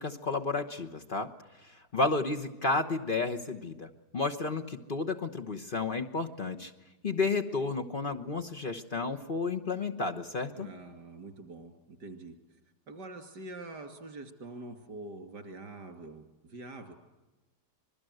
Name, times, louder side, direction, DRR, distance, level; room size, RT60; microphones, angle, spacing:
voice 1, 0.0-1.3 1.6-6.7 7.0-10.7, left 3 dB, 35° left, 5 dB, 1.1 m, -32 dB
voice 2, 10.6-12.3 12.9-16.9, right 2 dB, 85° right, 8 dB, 3.4 m, -45 dB
25.5 x 21.0 x 7.8 m, 1.1 s
omnidirectional pair, 1.8 m